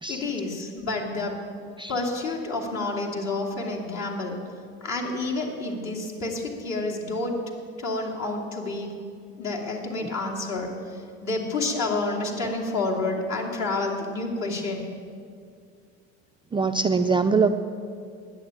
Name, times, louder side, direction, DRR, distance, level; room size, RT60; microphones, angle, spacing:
voice 1, 0.1-1.4 1.9-4.4 4.8-7.4 7.8-8.9 9.4-14.8, left 2 dB, 55° left, -1 dB, 2.8 m, -29 dB
voice 2, 16.5-17.5, right 4 dB, 15° right, 6 dB, 0.3 m, -23 dB
10.5 x 8.6 x 9.1 m, 2.3 s
supercardioid pair, 110°, 33 cm